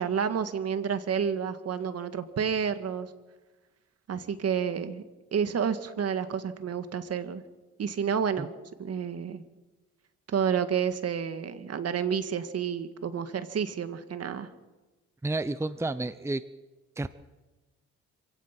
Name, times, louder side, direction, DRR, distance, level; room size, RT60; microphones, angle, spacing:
voice 1, 0.0-3.1 4.1-5.0 5.3-7.4 7.8-8.5 8.8-9.4 10.3-14.5, right 7 dB, 55° right, 10 dB, 1.9 m, -30 dB
voice 2, 15.2-16.4 17.0-17.1, right 2 dB, 10° right, 13 dB, 0.8 m, -30 dB
27.0 x 16.5 x 6.1 m, 1.2 s
cardioid pair, 90°, 30 cm